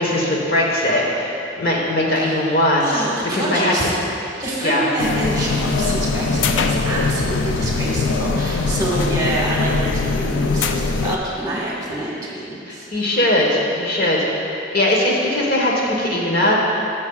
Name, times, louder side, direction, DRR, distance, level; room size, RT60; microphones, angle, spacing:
voice 1, 0.0-3.0 3.3-3.9 4.6-4.8 12.7-16.6, left 1 dB, 55° left, -3 dB, 1.3 m, -20 dB
voice 2, 2.8-3.9 4.4-12.9 14.9-15.0, right 1 dB, 20° right, -5 dB, 1.5 m, -26 dB
sound 1, 5.0-11.2, left 4 dB, 85° left, 0.4 m, -21 dB
14.0 x 7.2 x 2.4 m, 2.6 s
head